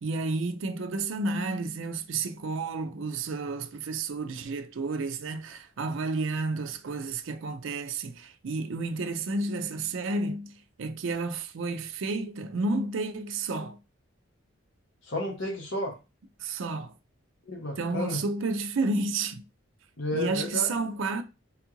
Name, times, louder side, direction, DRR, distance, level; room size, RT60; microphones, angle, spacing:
voice 1, 0.0-13.8 16.4-16.9 17.8-19.4 20.1-21.2, right 3 dB, 60° right, 0.4 m, -31 dB
voice 2, 15.0-15.9 17.5-18.2 20.0-20.7, left 1 dB, 60° left, 0.8 m, -32 dB
3.5 x 2.4 x 2.9 m
head